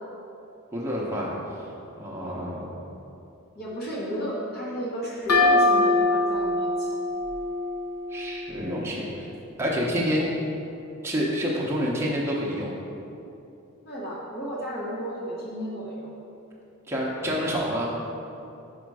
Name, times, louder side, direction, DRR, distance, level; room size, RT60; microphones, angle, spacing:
voice 1, 0.7-1.3 1.9-2.8 8.1-9.3 9.6-10.3 11.0-12.7 16.9-17.9, equal, 10° right, -4 dB, 0.8 m, -28 dB
voice 2, 3.5-6.9 13.8-16.2, equal, 45° left, -5 dB, 1.0 m, -33 dB
sound 1, 5.3-8.8, left 2 dB, 80° left, 1.4 m, -23 dB
5.1 x 5.0 x 4.8 m, 2.8 s
head